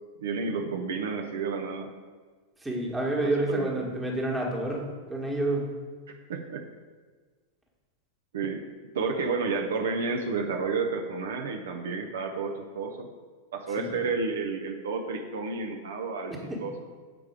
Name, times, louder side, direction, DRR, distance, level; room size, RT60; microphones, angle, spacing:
voice 1, 0.2-1.9 3.2-3.8 6.3-6.7 8.3-8.6 8.9-13.1 13.5-16.3 16.6-16.7, right 4 dB, 60° right, 3 dB, 0.5 m, -31 dB
voice 2, 2.6-5.7 13.8-14.0 16.3-16.6, right 1 dB, 10° right, -2 dB, 1.4 m, -29 dB
6.8 x 4.7 x 4.8 m, 1.5 s
figure-of-eight pair, 90°, 0 cm